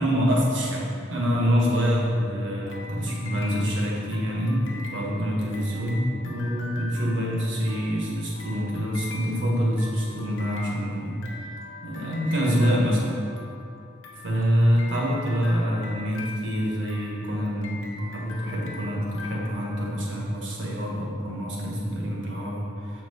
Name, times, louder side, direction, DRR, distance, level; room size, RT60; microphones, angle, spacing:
voice 1, 0.0-11.2 11.8-13.2 14.2-23.0, equal, 75° right, -3 dB, 1.5 m, -26 dB
sound 1, 2.7-20.3, left 3 dB, 80° left, 0.8 m, -43 dB
7.5 x 4.5 x 4.2 m, 2.4 s
head